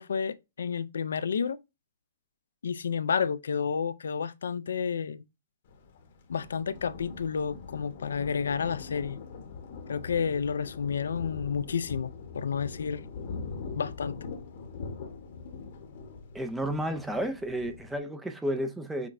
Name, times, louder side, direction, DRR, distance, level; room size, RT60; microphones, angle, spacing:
voice 1, 0.0-1.6 2.6-5.2 6.3-9.2 9.9-13.0 13.8-14.1, left 6 dB, 85° left, 0.3 m, -30 dB
Thunder, 5.6-18.0, left 4 dB, 50° left, 0.8 m, -42 dB
voice 2, 16.3-19.1, right 1 dB, 5° right, 0.3 m, -32 dB
5.8 x 2.2 x 2.4 m
hypercardioid pair, 155°, 0 cm